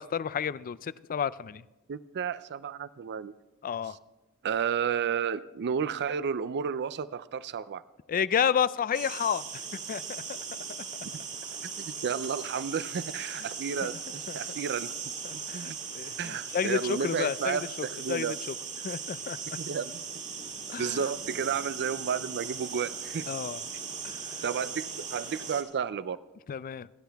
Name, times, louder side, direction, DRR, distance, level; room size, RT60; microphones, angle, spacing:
voice 1, 0.0-1.6 3.6-4.0 8.1-10.4 13.8-13.9 14.3-14.4 15.2-18.5 18.8-19.4 20.7-21.1 23.3-23.6 24.0-24.4 26.5-26.9, left 7 dB, 40° left, 18 dB, 0.3 m, -31 dB
voice 2, 1.9-3.3 3.9-4.0 4.4-7.8 11.0-11.1 11.6-14.9 15.3-15.7 16.2-18.4 19.6-19.9 20.8-23.3 24.4-26.2, right 7 dB, 50° right, 16 dB, 0.4 m, -32 dB
sound 1, 8.9-25.6, right 6 dB, 35° right, 1.9 m, -39 dB
27.0 x 10.0 x 3.5 m, 1.0 s
head